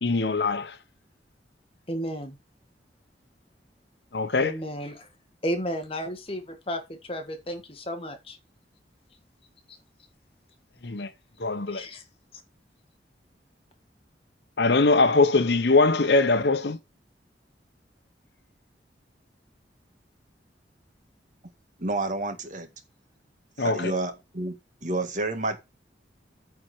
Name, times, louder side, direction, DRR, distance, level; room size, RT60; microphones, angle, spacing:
voice 1, 0.0-0.8 4.1-4.5 10.8-11.1 11.4-11.8 14.6-16.8 23.6-23.9, left 3 dB, 70° left, 0.9 m, -22 dB
voice 2, 1.9-2.4 4.4-5.1 5.4-8.4 11.7-12.0, equal, 30° left, 1.7 m, -33 dB
voice 3, 21.8-22.7 23.6-25.6, right 2 dB, 45° right, 1.7 m, -30 dB
9.2 x 4.4 x 6.4 m
head